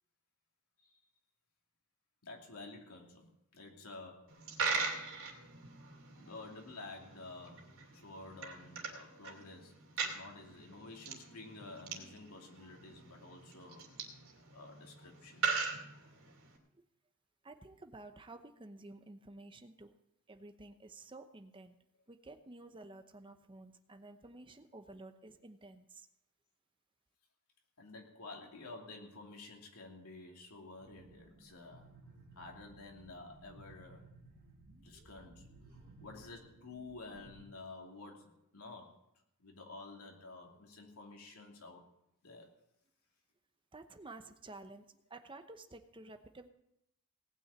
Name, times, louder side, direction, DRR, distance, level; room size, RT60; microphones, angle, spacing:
voice 1, 2.2-5.1 6.1-13.9 14.5-15.6 27.8-31.9 32.3-34.1 34.8-35.5 36.0-39.0 39.4-41.9 42.2-42.5, left 3 dB, 85° left, 1 dB, 2.8 m, -51 dB
Coin (dropping), 4.3-16.6, right 4 dB, 70° right, 2.5 m, -41 dB
voice 2, 17.4-19.9 20.3-21.7 22.1-26.1 43.7-46.5, right 2 dB, 20° right, 7 dB, 0.8 m, -52 dB
sound 1, 30.8-37.5, right 2 dB, 50° right, 2.3 m, -59 dB
18.5 x 6.3 x 8.7 m, 0.80 s
head